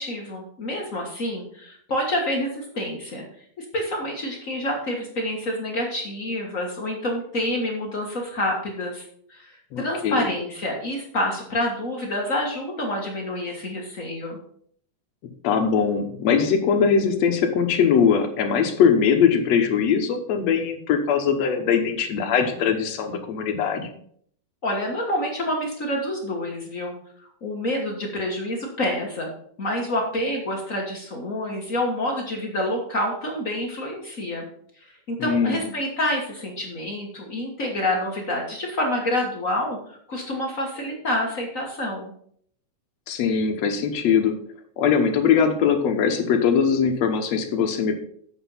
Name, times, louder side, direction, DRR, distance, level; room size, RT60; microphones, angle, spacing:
voice 1, 0.0-3.2 3.6-14.4 24.6-27.0 27.4-29.3 29.6-34.5 34.8-42.1, left 1 dB, 45° left, 0 dB, 1.0 m, -28 dB
voice 2, 9.7-10.3 15.4-23.9 35.2-35.6 43.1-44.4 44.8-48.0, left 6 dB, 65° left, 5 dB, 2.0 m, -21 dB
8.0 x 6.1 x 5.5 m, 0.63 s
omnidirectional pair, 3.6 m